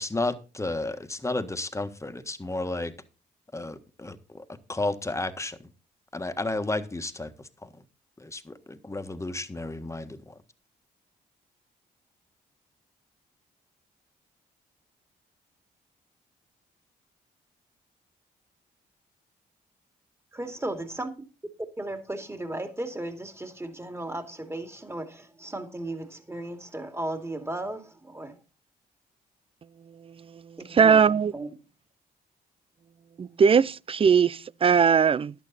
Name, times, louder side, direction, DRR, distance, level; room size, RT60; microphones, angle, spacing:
voice 1, 0.0-2.9 3.5-5.7 6.1-7.7 8.2-10.4, left 2 dB, 15° left, 1.6 m, -32 dB
voice 2, 20.3-21.1 21.8-28.3 30.6-31.5, right 1 dB, 15° right, 2.5 m, -35 dB
voice 3, 30.7-31.3 33.2-35.3, right 6 dB, 35° right, 0.4 m, -20 dB
11.5 x 9.1 x 4.1 m
supercardioid pair, 60°, 17 cm